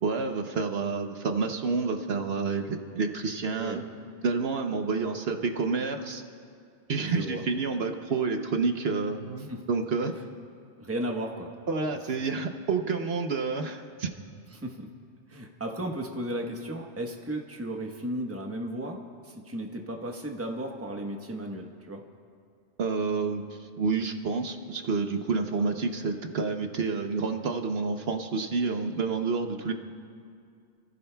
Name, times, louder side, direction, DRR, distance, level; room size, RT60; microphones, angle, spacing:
voice 1, 0.0-3.8 4.2-6.2 6.9-10.1 11.7-14.1 22.8-29.7, right 4 dB, 65° right, 5 dB, 1.0 m, -29 dB
voice 2, 7.1-7.4 9.5-9.6 10.8-11.5 14.5-14.9 15.3-22.0 25.6-25.7, right 1 dB, 15° right, 2 dB, 1.0 m, -35 dB
29.0 x 15.0 x 2.3 m, 2.4 s
omnidirectional pair, 1.1 m